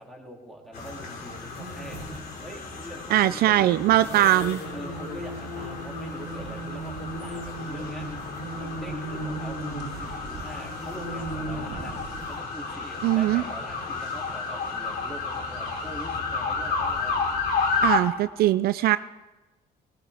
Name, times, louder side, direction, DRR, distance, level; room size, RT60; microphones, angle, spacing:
voice 1, 0.0-4.2 4.7-8.1 8.6-11.9 12.3-17.2, right 1 dB, ahead, 0 dB, 2.7 m, -43 dB
sound 1, 0.7-18.0, left 4 dB, 65° left, 2.6 m, -32 dB
sound 2, 0.8-1.0 1.5-2.2 4.0-12.4, right 1 dB, 80° left, 5.3 m, -37 dB
voice 2, 3.1-4.6 13.0-13.4 17.8-19.0, right 14 dB, 65° right, 13 dB, 0.4 m, -21 dB
sound 3, 5.2-5.3 5.9-16.2, right 5 dB, 85° right, 1.9 m, -47 dB
18.0 x 15.5 x 3.4 m, 1.1 s
cardioid pair, 110°, 17 cm